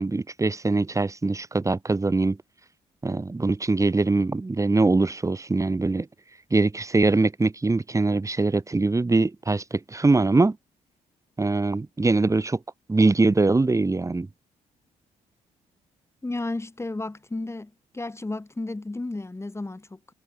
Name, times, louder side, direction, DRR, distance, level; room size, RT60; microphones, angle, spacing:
voice 1, 0.0-2.4 3.0-6.1 6.5-10.6 11.4-12.6 12.9-14.3, right 3 dB, 20° right, 1.9 m, -22 dB
voice 2, 16.2-20.1, left 2 dB, 20° left, 7.5 m, -33 dB
cardioid pair, 75°, 15 cm